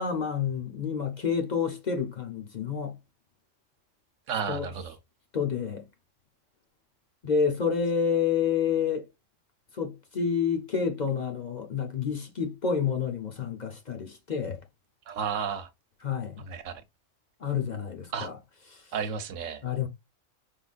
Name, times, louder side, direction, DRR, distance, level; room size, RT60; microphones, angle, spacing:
voice 1, 0.0-3.0 4.5-4.7 5.3-5.9 7.2-9.1 9.7-14.6 16.0-16.5 17.4-18.4 18.7-18.8 19.6-19.9, left 6 dB, 40° left, 0.8 m, -29 dB
voice 2, 4.3-4.9 15.1-15.7 16.5-16.7 18.1-18.3 18.9-19.6, right 6 dB, 80° right, 1.1 m, -32 dB
5.0 x 3.7 x 2.4 m
omnidirectional pair, 1.3 m